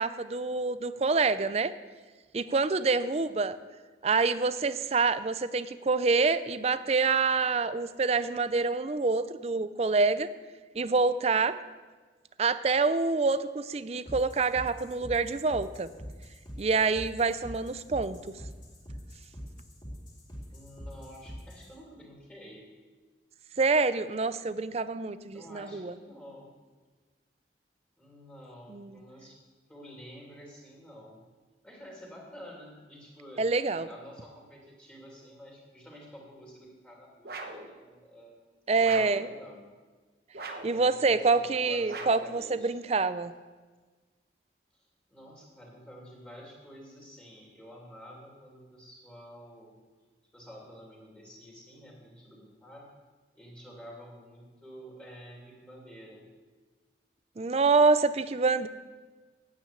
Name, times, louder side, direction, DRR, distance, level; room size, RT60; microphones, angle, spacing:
voice 1, 0.0-1.7 2.3-3.6 4.0-10.3 10.8-11.6 12.4-15.9 16.6-18.2 23.6-25.9 28.7-29.0 33.4-33.9 38.7-39.3 40.6-43.3 57.4-58.7, right 4 dB, 35° right, 14 dB, 0.4 m, -26 dB
sound 1, 14.0-21.7, equal, 25° left, 3.1 m, -44 dB
voice 2, 20.5-22.6 25.3-26.5 28.0-29.4 29.7-31.2 31.6-33.4 33.8-39.6 40.7-42.7 44.7-49.8 50.3-52.9 53.3-56.2, equal, 5° left, -3 dB, 3.0 m, -49 dB
sound 2, 37.2-37.7 38.8-39.3 40.3-40.8 41.9-42.3, right 3 dB, 55° right, 1.1 m, -40 dB
9.1 x 9.0 x 8.4 m, 1.4 s
head